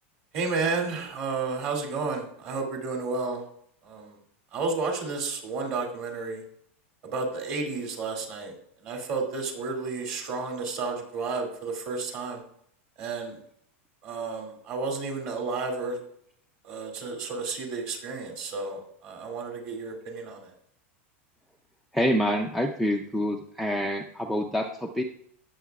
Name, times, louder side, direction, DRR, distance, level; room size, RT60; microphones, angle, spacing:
voice 1, 0.3-3.4 3.8-4.2 4.5-6.4 7.0-8.5 8.8-12.4 13.0-13.4 14.0-16.0 16.6-20.5, right 4 dB, 35° right, 1 dB, 2.3 m, -31 dB
voice 2, 21.9-25.0, equal, ahead, 3 dB, 0.4 m, -27 dB
18.0 x 7.3 x 2.3 m, 0.68 s
supercardioid pair, 175°, 7 cm